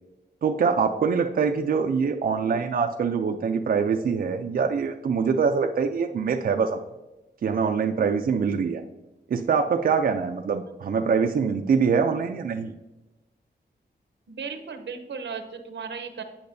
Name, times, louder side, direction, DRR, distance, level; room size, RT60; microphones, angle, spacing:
voice 1, 0.4-6.8 7.4-8.8 9.3-12.7, right 5 dB, 55° right, 4 dB, 0.4 m, -24 dB
voice 2, 14.3-16.2, right 5 dB, 85° right, 7 dB, 0.8 m, -35 dB
8.5 x 5.7 x 2.6 m, 1.0 s
wide cardioid pair, 120°, 18 cm